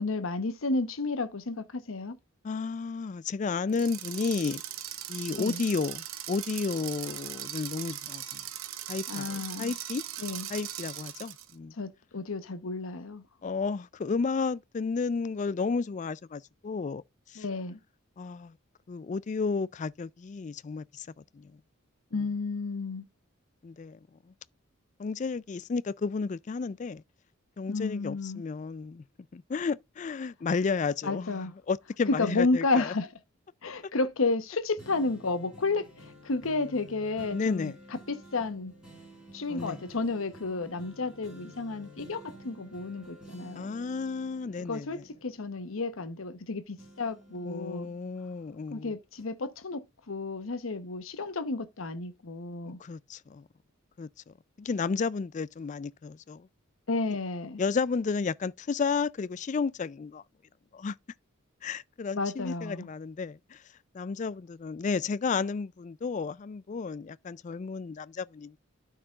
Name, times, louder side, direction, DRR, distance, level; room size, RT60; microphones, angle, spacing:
voice 1, 0.0-2.2 5.4-5.6 9.1-9.7 10.2-10.5 11.7-13.2 17.4-17.8 22.1-23.1 27.7-28.4 31.0-31.5 32.1-33.1 33.6-38.7 39.3-43.8 44.7-47.9 48.7-52.8 56.9-57.6 62.1-62.9, left 3 dB, 75° left, 0.9 m, -32 dB
voice 2, 2.4-4.6 5.1-8.4 8.9-10.0 10.5-11.7 13.4-17.4 18.2-18.6 18.9-21.1 21.3-21.5 23.6-24.0 25.0-27.0 27.6-29.0 29.3-32.9 33.8-33.9 37.3-37.8 39.5-39.8 43.5-45.0 47.5-48.9 52.7-53.5 54.0-56.5 57.6-60.2 60.7-61.0 61.6-63.6 63.9-68.6, left 4 dB, 35° left, 0.3 m, -32 dB
sound 1, 3.7-11.5, right 12 dB, 80° right, 0.9 m, -39 dB
sound 2, 34.8-46.4 46.8-48.7 49.2-49.3, right 1 dB, 5° right, 4.5 m, -51 dB
12.5 x 4.7 x 2.3 m
head